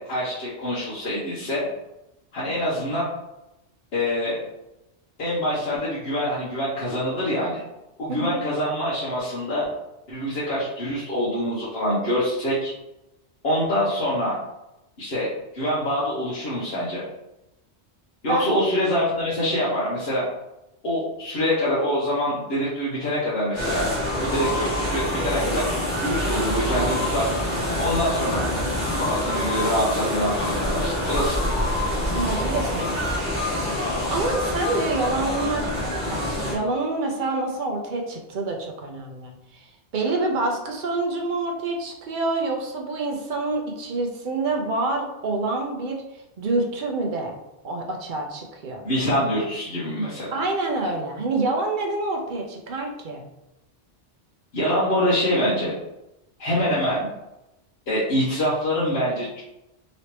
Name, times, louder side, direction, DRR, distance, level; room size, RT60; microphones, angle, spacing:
voice 1, 0.0-1.7 2.3-3.1 3.9-4.4 5.2-7.6 8.0-9.7 10.1-12.7 13.4-14.4 15.0-17.0 18.2-20.3 20.8-23.8 24.2-25.6 26.0-27.2 27.8-28.4 29.0-31.5 48.8-50.4 54.5-55.7 56.4-57.1 57.9-59.4, equal, 60° left, -9 dB, 1.1 m, -25 dB
voice 2, 8.1-8.4 18.3-18.6 32.1-33.4 33.7-35.7 36.0-39.6 39.9-46.0 46.4-47.3 47.6-48.8 50.3-53.2, right 2 dB, 55° right, 1 dB, 0.7 m, -27 dB
sound 1, 23.5-36.5, left 1 dB, 10° left, 1.4 m, -26 dB
3.1 x 3.1 x 2.9 m, 0.92 s
omnidirectional pair, 1.2 m